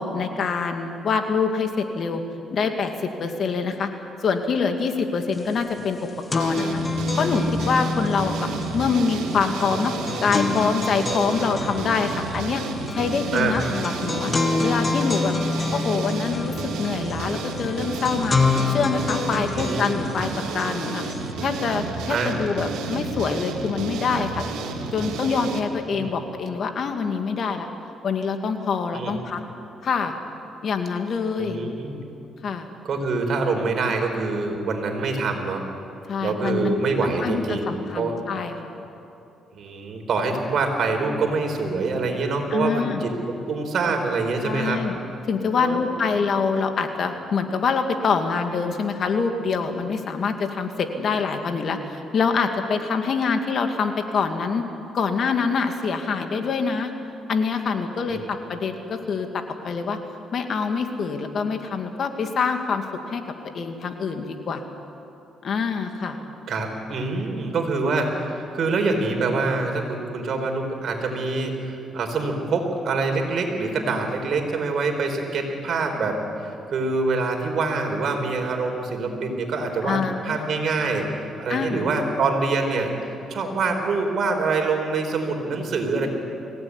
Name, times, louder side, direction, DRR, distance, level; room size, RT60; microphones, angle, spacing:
voice 1, 0.0-2.2 2.5-3.9 4.2-6.0 6.3-6.8 7.2-9.9 10.2-12.6 12.9-14.3 14.6-15.3 15.7-18.4 18.7-21.0 21.4-24.4 24.9-27.7 28.0-29.4 29.8-30.1 30.6-31.7 32.4-32.7 36.1-36.8 37.2-38.5 42.5-43.0 44.4-45.0 45.3-54.7 54.9-56.9 57.3-60.0 60.3-63.2 63.5-64.6 65.4-66.2 79.8-80.5 81.5-81.9, left 5 dB, 55° left, 6 dB, 2.4 m, -25 dB
sound 1, 5.4-5.5 5.8-21.3, left 3 dB, 30° left, 2.1 m, -28 dB
sound 2, 6.4-25.6, right 4 dB, 85° right, 2.2 m, -31 dB
voice 2, 31.4-32.0 32.8-35.6 36.2-38.2 39.5-44.8 45.5-45.8 58.1-58.2 66.5-81.1 81.4-82.9 83.3-86.1, right 3 dB, 60° right, 3 dB, 4.5 m, -25 dB
24.0 x 17.0 x 9.9 m, 2.8 s
cardioid pair, 90°, 0 cm